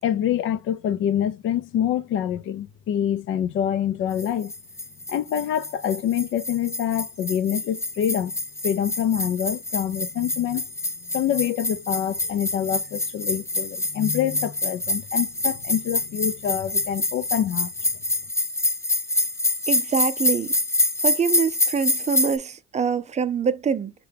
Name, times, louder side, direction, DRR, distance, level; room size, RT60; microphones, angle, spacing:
voice 1, 0.0-4.5 5.1-8.3 8.6-10.6 11.1-17.7, left 10 dB, 80° left, 0.5 m, -26 dB
sound 1, 4.2-22.4, left 2 dB, 15° left, 0.5 m, -26 dB
voice 2, 19.7-20.5 21.0-23.9, right 6 dB, 35° right, 0.5 m, -25 dB
5.6 x 2.2 x 3.3 m
cardioid pair, 90°, 20 cm